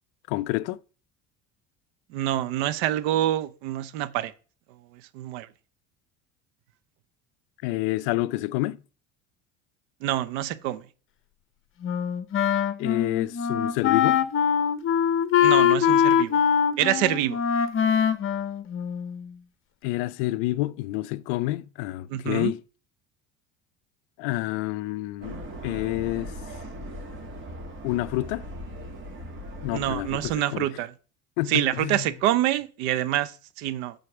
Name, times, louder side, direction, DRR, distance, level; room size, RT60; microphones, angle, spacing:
voice 1, 0.3-0.8 7.6-8.8 12.8-14.3 19.8-22.6 24.2-26.3 27.8-28.5 29.6-30.7 31.4-32.1, left 18 dB, 80° left, 0.5 m, -28 dB
voice 2, 2.1-4.3 5.1-5.5 10.0-10.8 15.4-16.4 16.8-17.4 22.1-22.5 29.7-30.9 31.5-33.9, right 13 dB, 85° right, 0.8 m, -26 dB
Wind instrument woodwind instrument, 11.8-19.3, left 8 dB, 40° left, 0.8 m, -23 dB
sound 1, 25.2-30.3, equal, 40° right, 2.1 m, -39 dB
6.6 x 4.2 x 5.9 m
supercardioid pair, 95°, 32 cm